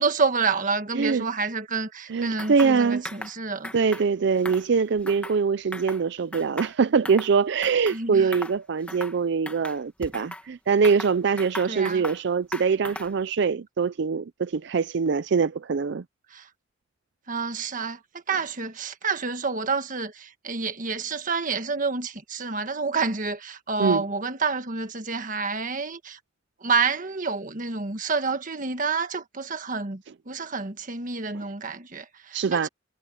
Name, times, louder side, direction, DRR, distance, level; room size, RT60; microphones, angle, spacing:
voice 1, 0.0-3.7 7.9-8.3 11.7-12.0 16.3-16.5 17.3-18.0 18.3-26.2 26.6-32.7, right 4 dB, 45° right, 1.5 m, -28 dB
voice 2, 0.9-1.3 2.1-3.0 3.7-16.0 23.8-24.0 31.3-31.4 32.3-32.7, right 5 dB, 65° right, 0.5 m, -23 dB
sound 1, 2.4-2.7 3.0-3.3 3.6-4.1 4.4-5.4 5.7-6.0 6.3-7.3 7.6-8.0 8.3-8.6 8.9-9.2 9.5-10.4 10.8-12.2 12.5-13.2, left 1 dB, 5° left, 1.8 m, -38 dB
head